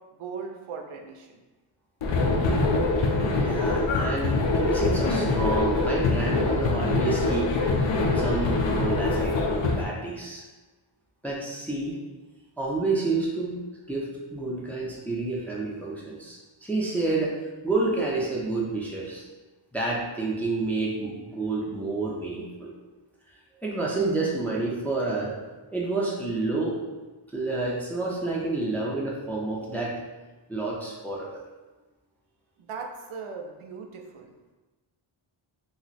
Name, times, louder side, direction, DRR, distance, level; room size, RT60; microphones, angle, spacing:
voice 1, 0.2-1.4 32.6-34.3, right 5 dB, 80° right, 3 dB, 0.5 m, -38 dB
sound 1, 2.0-9.8, left 3 dB, 65° left, 0.5 m, -24 dB
voice 2, 3.3-7.6 8.1-10.4 11.2-12.0 12.6-13.6 13.9-19.2 19.7-22.7 23.6-25.3 25.7-26.8 27.3-30.0 30.5-31.4, right 3 dB, 5° left, -4 dB, 0.4 m, -29 dB
2.5 x 2.1 x 3.9 m, 1.2 s
wide cardioid pair, 130°, 50 cm